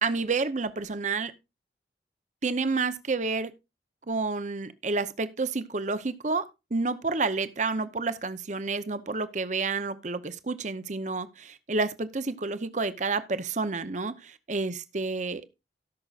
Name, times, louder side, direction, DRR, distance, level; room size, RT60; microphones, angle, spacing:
voice 1, 0.0-1.3 2.4-3.5 4.1-15.5, right 3 dB, 45° right, 0.8 m, -30 dB
18.0 x 6.1 x 2.5 m
head